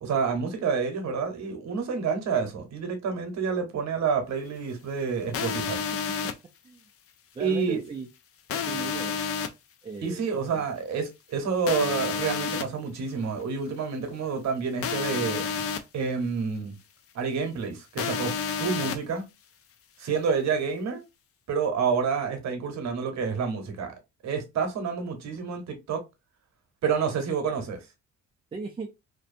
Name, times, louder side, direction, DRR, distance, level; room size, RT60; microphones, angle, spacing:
voice 1, 0.0-5.8 7.4-7.8 10.0-15.6 15.9-16.8 17.1-19.2 20.0-21.0 21.5-23.9 24.2-26.0 26.8-27.8, right 5 dB, 65° right, 0.9 m, -28 dB
sound 1, 5.3-6.3 8.5-9.5 11.7-12.6 14.8-15.8 18.0-19.0, left 6 dB, 50° left, 0.4 m, -30 dB
voice 2, 7.3-8.1 8.5-9.2 9.8-10.6 28.5-28.9, right 4 dB, 20° right, 0.4 m, -38 dB
2.6 x 2.2 x 2.5 m
cardioid pair, 90°, 30 cm